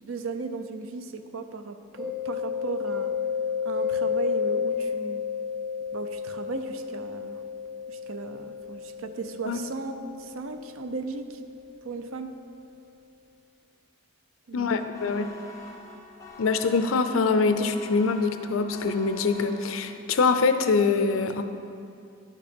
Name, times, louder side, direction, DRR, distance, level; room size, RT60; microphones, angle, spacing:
voice 1, 0.0-3.1 3.6-5.2 5.9-7.4 7.9-11.4 11.8-12.3 14.5-14.7 15.0-15.2, right 4 dB, 90° right, 8 dB, 0.6 m, -36 dB
Mallet percussion, 2.0-11.6, left 6 dB, 35° right, 1.7 m, -32 dB
voice 2, 14.5-15.3 16.4-21.4, left 4 dB, 85° left, 9 dB, 0.5 m, -24 dB
sound 1, 14.9-20.2, left 3 dB, 15° left, 0.8 m, -46 dB
10.5 x 6.0 x 4.4 m, 2.6 s
head